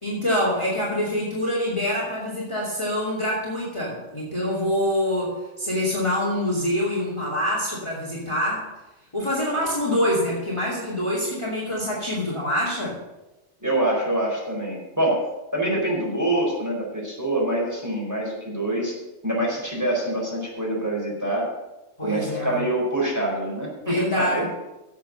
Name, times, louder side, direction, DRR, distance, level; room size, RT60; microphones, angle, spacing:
voice 1, 0.0-8.7 9.1-13.0 22.0-22.6 23.8-24.4, equal, 20° left, -5 dB, 2.7 m, -25 dB
voice 2, 13.6-15.2 15.5-18.9 19.2-21.5 22.0-24.5, right 1 dB, 10° right, -4 dB, 4.6 m, -25 dB
11.0 x 8.0 x 6.6 m, 1.0 s
omnidirectional pair, 1.4 m